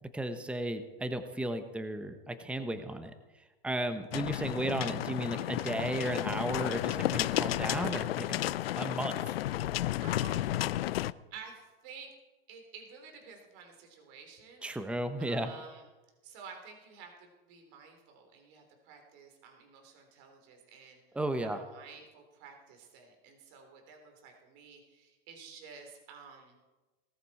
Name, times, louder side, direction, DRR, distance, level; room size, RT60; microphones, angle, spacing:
voice 1, 0.1-3.1 3.6-8.4 8.8-9.2 14.6-15.5 21.1-21.6, right 1 dB, 5° right, 9 dB, 1.0 m, -34 dB
sound 1, 4.1-11.1, left 14 dB, 85° left, 0.5 m, -32 dB
voice 2, 10.0-10.7 11.3-12.1 12.5-14.6 15.2-15.8 16.2-21.0 21.4-26.6, right 6 dB, 50° right, 3 dB, 3.5 m, -51 dB
18.5 x 14.0 x 4.3 m, 1.1 s
hypercardioid pair, 120°, 29 cm